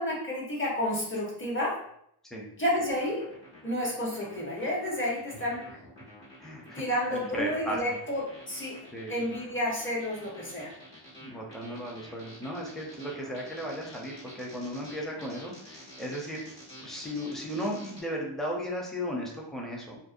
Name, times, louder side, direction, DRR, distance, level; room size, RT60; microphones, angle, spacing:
voice 1, 0.0-1.8 2.6-3.3 3.6-5.6 6.7-8.8 9.1-10.7, left 1 dB, 25° left, -4 dB, 0.9 m, -30 dB
sound 1, 2.7-18.0, left 1 dB, 55° left, 1.4 m, -49 dB
voice 2, 6.4-6.8 7.1-7.9 8.9-9.2 11.2-16.4 16.8-20.0, equal, ahead, -2 dB, 0.6 m, -35 dB
2.5 x 2.1 x 2.5 m, 0.72 s
wide cardioid pair, 60°, 49 cm